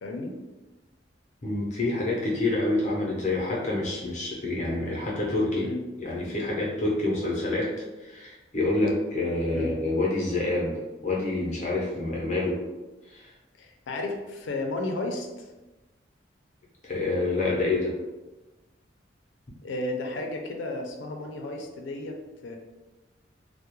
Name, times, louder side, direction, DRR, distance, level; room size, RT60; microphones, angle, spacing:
voice 1, 0.0-0.3 5.6-5.8 9.5-9.7 13.6-15.5 19.6-22.6, left 2 dB, 90° left, 3 dB, 0.4 m, -33 dB
voice 2, 1.4-5.7 6.0-7.7 8.0-10.7 11.0-12.6 13.1-13.3 16.8-17.9, left 2 dB, 40° left, -4 dB, 0.6 m, -27 dB
2.3 x 2.0 x 2.9 m, 1.1 s
head